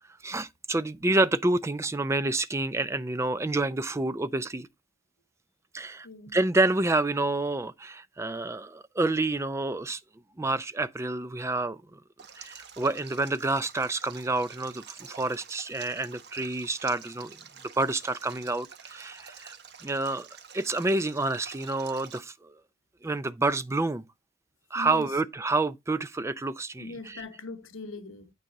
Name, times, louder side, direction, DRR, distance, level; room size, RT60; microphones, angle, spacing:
voice 1, 0.2-4.7 5.7-6.1 6.3-10.0 10.4-12.0 12.4-17.4 17.8-19.6 19.8-20.3 20.5-22.5 23.0-24.0 24.7-27.2, right 2 dB, 15° right, 0.4 m, -28 dB
voice 2, 6.0-6.4 24.7-25.2 26.8-28.3, left 3 dB, 85° left, 1.0 m, -40 dB
Stream, 12.2-22.2, right 7 dB, 55° right, 1.0 m, -49 dB
9.1 x 4.8 x 4.0 m
head